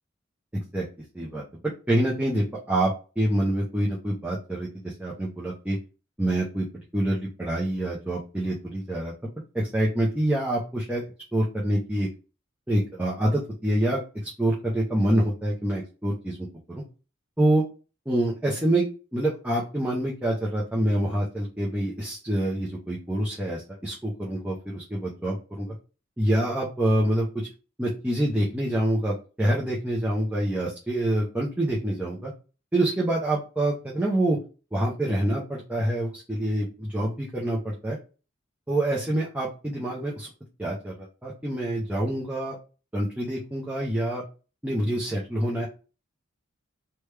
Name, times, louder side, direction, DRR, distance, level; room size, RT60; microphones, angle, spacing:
voice 1, 0.5-0.8 1.1-1.4 1.9-5.8 6.2-6.7 6.9-11.0 11.3-12.1 12.7-14.0 14.4-16.8 17.4-17.6 18.1-18.9 19.1-25.7 26.2-27.5 27.8-32.3 32.7-34.4 34.7-38.0 38.7-40.3 40.6-41.0 41.2-42.6 42.9-44.2 44.6-45.7, right 1 dB, 5° right, -5 dB, 0.5 m, -26 dB
3.3 x 2.2 x 3.2 m, 0.34 s
head